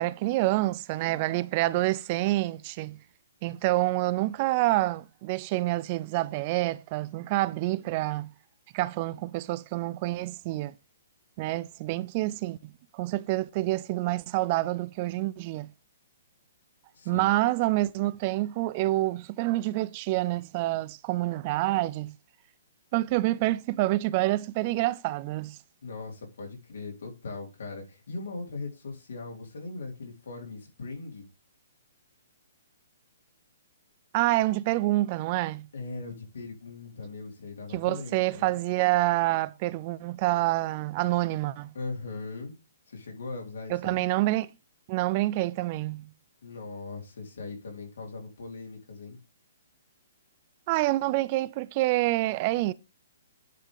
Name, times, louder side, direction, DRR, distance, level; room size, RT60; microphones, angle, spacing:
voice 1, 0.0-3.0 3.4-8.3 8.7-10.7 11.4-12.6 12.9-15.7 17.1-22.1 22.9-25.6 34.1-35.7 37.7-41.7 43.7-44.5 44.9-46.1 50.7-52.7, right 18 dB, 30° right, 0.3 m, -27 dB
voice 2, 16.9-17.3 25.8-31.3 35.7-38.6 41.7-42.5 42.9-44.1 46.4-49.2, left 3 dB, 75° left, 3.6 m, -39 dB
10.0 x 3.7 x 4.9 m
hypercardioid pair, 160°, 0 cm